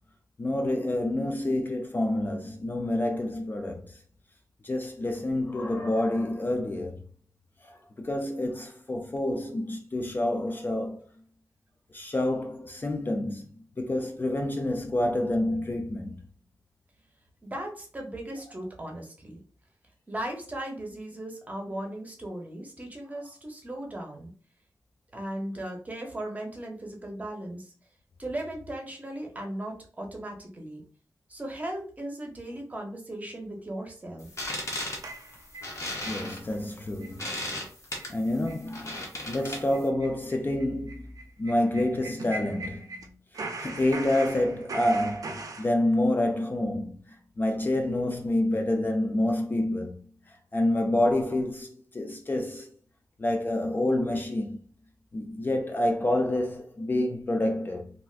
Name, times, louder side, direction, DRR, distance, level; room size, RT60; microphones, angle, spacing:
voice 1, 0.4-4.0 4.6-7.0 7.6-11.0 11.9-16.2 36.0-37.4 38.1-41.1 41.4-43.1 43.6-50.0 50.3-52.7 53.2-54.6 55.1-57.9, left 1 dB, 30° left, 0.4 m, -28 dB
voice 2, 17.4-19.4 20.1-24.3 25.1-27.7 28.2-30.8 31.3-34.3, right 1 dB, 20° right, 0.7 m, -37 dB
sound 1, 34.2-39.9, left 1 dB, 45° left, 0.8 m, -36 dB
Ticking Time bomb, 35.0-36.2 36.5-36.6 37.0-37.2 37.5-37.6 38.0-38.1 38.5-38.6 38.9-39.1 39.4-43.1 43.3-45.7, right 3 dB, 60° right, 0.5 m, -40 dB
3.3 x 2.4 x 2.4 m
wide cardioid pair, 135°, 7 cm